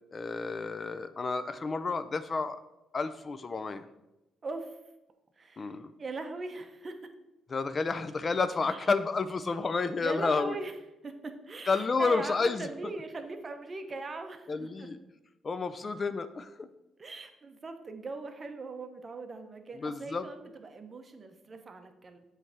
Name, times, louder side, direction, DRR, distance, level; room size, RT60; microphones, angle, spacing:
voice 1, 0.1-2.6 2.9-3.8 5.6-5.9 7.5-10.6 11.7-12.7 14.5-15.0 15.4-16.7 19.7-20.3, left 4 dB, 35° left, 12 dB, 0.4 m, -30 dB
voice 2, 4.4-4.7 5.4-7.0 8.6-8.8 10.0-10.7 11.0-14.9 17.0-22.2, right 3 dB, 35° right, 7 dB, 0.8 m, -40 dB
7.6 x 3.3 x 5.8 m, 0.97 s
cardioid pair, 90°, 0 cm